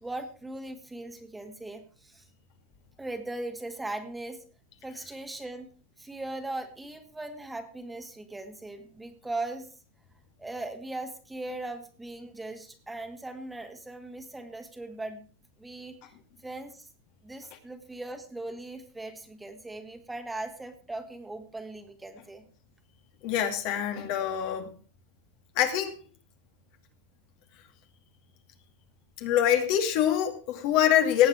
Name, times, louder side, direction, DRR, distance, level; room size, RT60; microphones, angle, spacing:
voice 1, 0.0-2.2 3.0-4.5 4.8-5.7 6.0-9.7 10.4-15.2 15.6-15.9 16.4-16.9 17.2-22.4, right 2 dB, 10° right, 6 dB, 2.0 m, -39 dB
voice 2, 23.2-24.7 25.6-25.9 29.2-31.3, left 10 dB, 55° left, 5 dB, 2.5 m, -24 dB
18.0 x 7.8 x 4.6 m, 0.36 s
hypercardioid pair, 110°, 0 cm